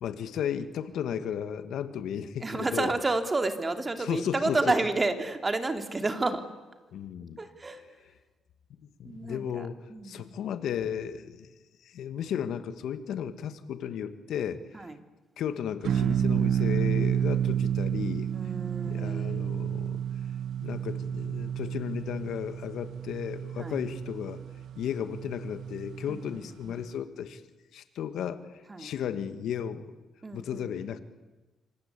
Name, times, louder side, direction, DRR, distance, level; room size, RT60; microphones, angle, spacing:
voice 1, 0.0-2.9 4.0-4.7 6.9-7.4 9.0-11.5 11.8-14.6 15.4-18.3 18.8-20.0 20.6-24.4 24.8-27.4 27.7-28.5 28.8-29.9 30.3-31.0, left 8 dB, 75° left, 10 dB, 2.0 m, -34 dB
voice 2, 2.4-6.4 7.4-7.8 9.0-10.3 14.7-15.0 18.3-19.7 23.6-23.7 26.1-26.8 28.7-28.9 30.2-30.7, right 2 dB, 25° right, 6 dB, 3.1 m, -31 dB
sound 1, 15.8-26.4, right 9 dB, 70° right, 1.3 m, -30 dB
28.0 x 25.0 x 8.5 m, 1.1 s
cardioid pair, 90°, 0 cm